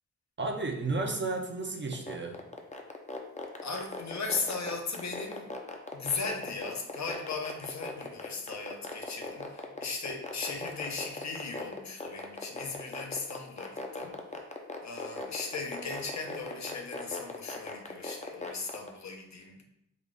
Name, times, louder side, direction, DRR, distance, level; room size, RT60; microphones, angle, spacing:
voice 1, 0.4-2.4, right 3 dB, 35° right, 2 dB, 0.6 m, -33 dB
sound 1, 1.9-18.9, left 3 dB, 20° left, 0.5 m, -38 dB
voice 2, 3.6-5.5 5.9-14.1 14.8-19.6, left 4 dB, 55° left, 2 dB, 0.7 m, -37 dB
3.8 x 2.3 x 3.5 m, 0.76 s
cardioid pair, 60°, 33 cm